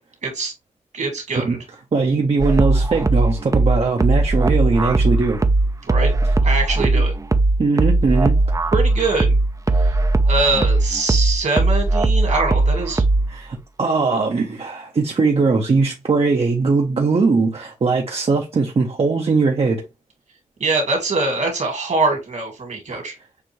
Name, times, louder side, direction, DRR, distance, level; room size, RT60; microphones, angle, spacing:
voice 1, 0.2-0.5 0.9-1.6 5.9-6.1 6.4-7.1 8.7-9.4 9.8-9.9 10.3-13.0 20.6-23.2, right 3 dB, 65° right, 2.3 m, -23 dB
voice 2, 1.9-5.4 6.8-6.9 7.6-8.4 13.3-19.8 22.9-23.0, right 4 dB, 50° right, 0.9 m, -20 dB
sound 1, 2.4-13.4, right 2 dB, 25° right, 0.6 m, -18 dB
6.6 x 2.6 x 3.0 m
cardioid pair, 60°, 13 cm